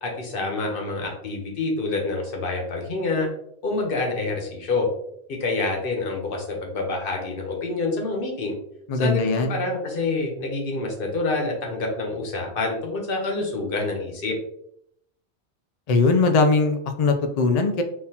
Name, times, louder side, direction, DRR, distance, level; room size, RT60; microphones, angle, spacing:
voice 1, 0.0-3.3 3.6-4.9 5.4-8.6 9.0-14.4, left 3 dB, 55° left, 1 dB, 1.0 m, -27 dB
voice 2, 8.9-9.6 15.9-17.8, left 3 dB, 80° left, 6 dB, 0.3 m, -20 dB
3.8 x 2.8 x 2.8 m, 0.73 s
omnidirectional pair, 1.2 m